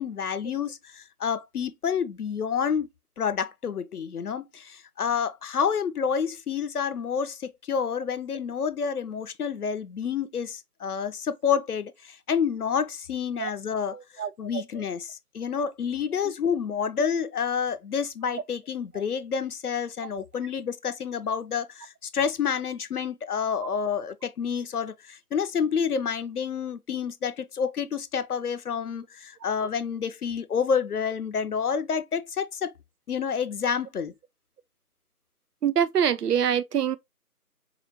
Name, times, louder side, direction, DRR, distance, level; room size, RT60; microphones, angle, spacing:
voice 1, 0.0-2.9 3.2-32.7 33.1-34.1, left 7 dB, 75° left, 0.6 m, -29 dB
voice 2, 35.6-37.0, right 8 dB, 90° right, 0.6 m, -24 dB
4.8 x 2.1 x 2.9 m
figure-of-eight pair, 170°, 46 cm